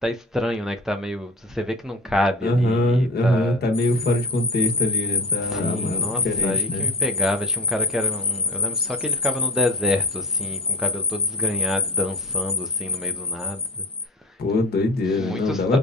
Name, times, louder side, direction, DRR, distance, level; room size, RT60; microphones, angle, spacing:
voice 1, 0.0-3.6 5.4-13.8 14.2-14.4 15.1-15.8, left 1 dB, ahead, 0.5 m, -28 dB
voice 2, 2.4-6.9 14.4-15.8, left 1 dB, 50° left, 1.1 m, -22 dB
sound 1, 3.7-14.0, left 4 dB, 25° left, 0.7 m, -26 dB
4.8 x 2.2 x 2.6 m
cardioid pair, 90°, 20 cm